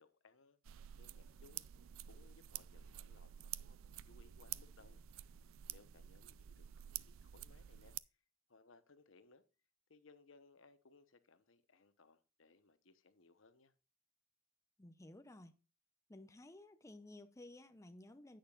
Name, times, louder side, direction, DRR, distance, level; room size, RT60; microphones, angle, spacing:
voice 1, 0.0-5.0 5.7-8.0 8.5-9.4 9.9-13.7, left 3 dB, 70° left, 1.0 m, -66 dB
sound 1, 0.7-8.0, right 12 dB, 85° right, 0.4 m, -50 dB
voice 2, 14.8-15.5 16.1-18.4, left 1 dB, 15° left, 0.6 m, -55 dB
10.0 x 8.9 x 2.4 m
head